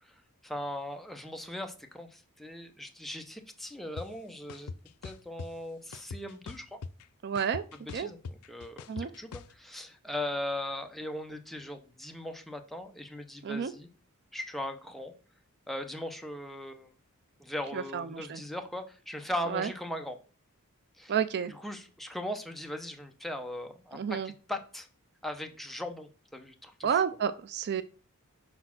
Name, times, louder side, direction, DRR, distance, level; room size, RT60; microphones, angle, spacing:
voice 1, 0.4-4.7 5.0-6.8 7.9-13.9 14.3-15.1 15.7-17.0 17.4-20.2 21.0-21.1 21.5-24.9 25.2-27.0, left 1 dB, ahead, 4 dB, 0.7 m, -39 dB
sound 1, 4.0-4.1 4.5-5.5 5.9-7.0 7.4-9.5, left 4 dB, 90° left, 0.4 m, -41 dB
voice 2, 7.2-7.6 7.9-8.1 8.9-9.1 13.4-13.7 17.7-18.4 19.5-19.7 21.1-21.5 23.9-24.3 26.8-27.8, right 7 dB, 50° right, 13 dB, 0.4 m, -30 dB
5.3 x 4.1 x 5.9 m, 0.38 s
head